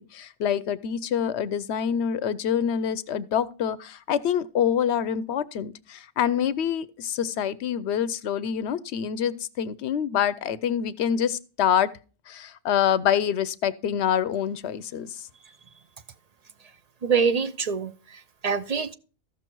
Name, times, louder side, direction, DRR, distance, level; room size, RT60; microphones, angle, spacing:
voice 1, 0.0-11.9 12.3-15.2, left 9 dB, 80° left, 0.9 m, -26 dB
voice 2, 17.0-18.9, right 6 dB, 45° right, 0.7 m, -25 dB
14.5 x 6.2 x 4.5 m
omnidirectional pair, 1.1 m